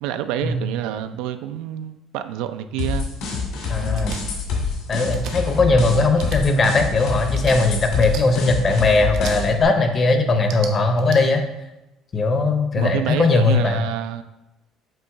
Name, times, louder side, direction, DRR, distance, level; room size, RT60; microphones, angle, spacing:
voice 1, 0.0-3.1 3.8-4.2 10.3-10.4 12.8-14.2, right 11 dB, 90° right, 10 dB, 0.4 m, -28 dB
sound 1, 2.8-9.6, left 4 dB, 70° left, 2.1 m, -26 dB
voice 2, 3.7-4.2 4.9-11.4 12.1-13.8, left 3 dB, 25° left, 6 dB, 0.7 m, -19 dB
sound 2, 3.9-4.2 5.1-5.3 6.1-6.4 7.3-7.6 8.0-8.2 9.1-9.4 10.4-11.2, right 7 dB, 65° right, 0.7 m, -35 dB
7.7 x 2.9 x 4.7 m, 0.99 s
cardioid pair, 165°, 0 cm